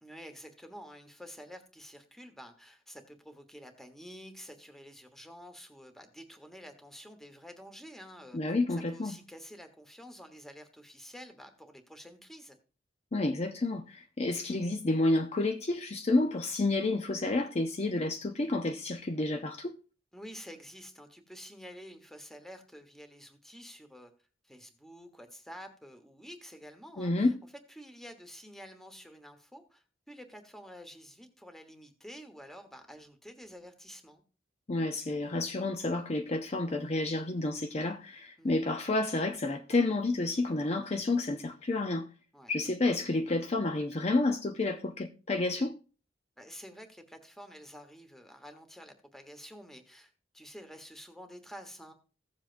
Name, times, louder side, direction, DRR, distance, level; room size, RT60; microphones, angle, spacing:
voice 1, 0.0-8.5 8.9-12.6 20.1-24.1 24.4-27.3 27.7-34.2 38.4-38.5 42.3-42.5 46.4-51.9, equal, ahead, 1.2 m, -49 dB
voice 2, 8.3-9.1 13.1-19.8 27.0-27.4 34.7-42.1 42.5-45.8, left 2 dB, 35° left, 0.6 m, -30 dB
16.0 x 7.3 x 2.5 m
head